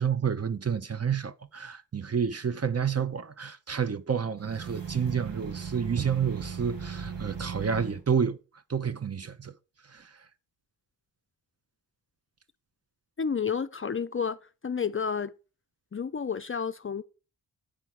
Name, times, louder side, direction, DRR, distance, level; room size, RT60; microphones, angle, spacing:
voice 1, 0.0-8.4 8.7-9.5 9.9-10.2, right 7 dB, 35° right, 0.8 m, -29 dB
sound 1, 4.4-8.0, right 6 dB, 85° right, 1.9 m, -37 dB
voice 2, 13.2-14.4 14.6-15.3 15.9-17.0, left 6 dB, 30° left, 0.5 m, -30 dB
8.5 x 4.6 x 5.8 m
cardioid pair, 45°, 43 cm